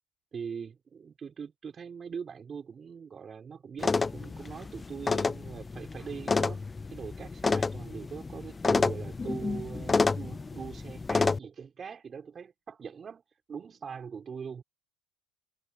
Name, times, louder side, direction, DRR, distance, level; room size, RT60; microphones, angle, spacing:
voice 1, 0.3-6.6 6.9-13.2 13.5-14.6, right 6 dB, 35° right, 4.7 m, -42 dB
sound 1, 3.8-11.4, left 4 dB, 20° left, 0.5 m, -29 dB
supercardioid pair, 105°, 0 cm